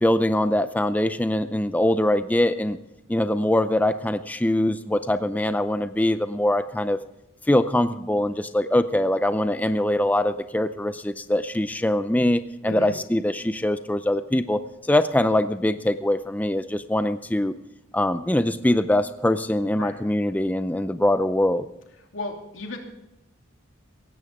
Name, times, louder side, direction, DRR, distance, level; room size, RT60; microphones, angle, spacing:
voice 1, 0.0-2.8 3.1-7.0 7.5-17.6 17.9-21.7, left 1 dB, 10° left, 11 dB, 0.5 m, -23 dB
voice 2, 12.6-12.9 19.7-20.0 22.1-22.8, left 2 dB, 85° left, 2 dB, 2.8 m, -34 dB
17.5 x 15.5 x 3.6 m, 0.87 s
head